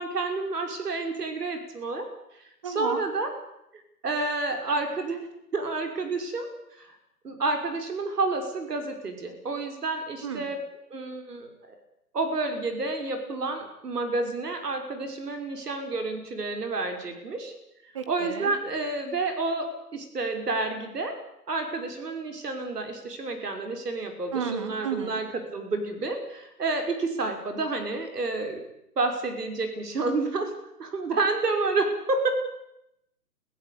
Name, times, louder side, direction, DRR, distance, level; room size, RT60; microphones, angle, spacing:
voice 1, 0.0-2.1 2.6-3.3 4.0-5.3 5.5-7.0 7.2-10.6 10.9-11.5 12.1-17.5 18.1-21.1 21.5-28.6 29.0-30.5 30.8-32.3, right 3 dB, 75° right, 6 dB, 5.7 m, -29 dB
voice 2, 2.6-3.0 10.2-10.5 17.9-18.5 24.3-25.2, right 7 dB, 20° right, 10 dB, 1.3 m, -32 dB
24.5 x 16.0 x 8.6 m, 0.82 s
hypercardioid pair, 170°, 48 cm